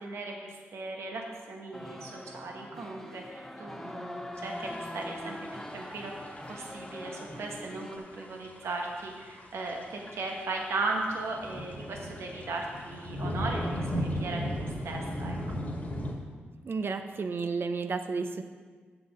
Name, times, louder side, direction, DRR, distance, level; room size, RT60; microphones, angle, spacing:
voice 1, 0.0-6.1 6.5-15.4, right 3 dB, 80° right, 0 dB, 1.3 m, -37 dB
sound 1, 1.7-8.0, left 1 dB, 10° left, 0.9 m, -42 dB
sound 2, 4.3-16.1, equal, 35° left, 1.6 m, -37 dB
voice 2, 16.6-18.4, right 4 dB, 55° right, 8 dB, 0.7 m, -32 dB
7.4 x 7.0 x 4.9 m, 1.5 s
cardioid pair, 60°, 4 cm